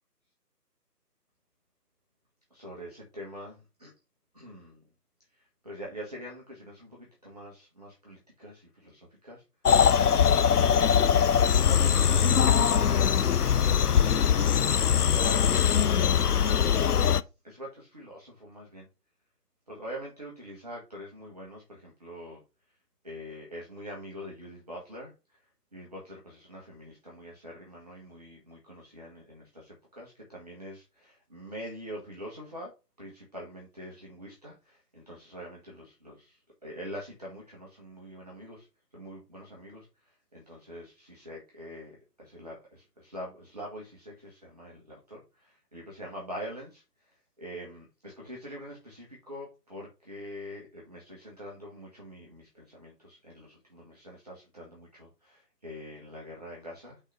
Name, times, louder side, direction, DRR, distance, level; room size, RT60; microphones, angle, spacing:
voice 1, 2.5-3.9 4.3-4.8 5.3-9.4 10.1-12.9 13.6-16.4 16.7-18.9 19.7-22.4 23.0-25.4 25.7-38.7 38.9-57.0, equal, 25° right, -3 dB, 1.3 m, -44 dB
sound 1, 9.7-17.2, left 8 dB, 70° left, 0.5 m, -22 dB
5.6 x 4.0 x 4.8 m, 0.28 s
figure-of-eight pair, 155°, 48 cm